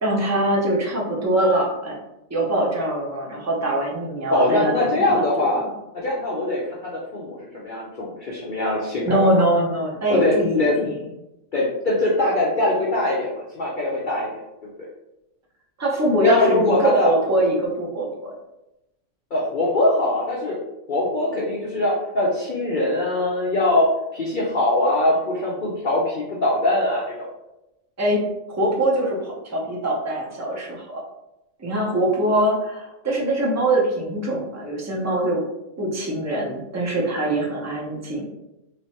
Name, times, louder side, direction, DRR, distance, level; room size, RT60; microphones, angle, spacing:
voice 1, 0.0-2.0 2.3-5.7 9.0-10.9 15.8-18.3 28.0-28.2 28.5-30.8 31.6-35.4 35.8-38.3, right 1 dB, 25° right, -3 dB, 0.3 m, -23 dB
voice 2, 4.3-5.7 5.9-9.3 10.1-10.8 11.5-14.4 16.2-17.1 19.3-20.6 20.9-23.9 24.1-27.3, left 1 dB, 50° left, -5 dB, 0.6 m, -22 dB
3.2 x 3.0 x 2.8 m, 0.92 s
omnidirectional pair, 1.4 m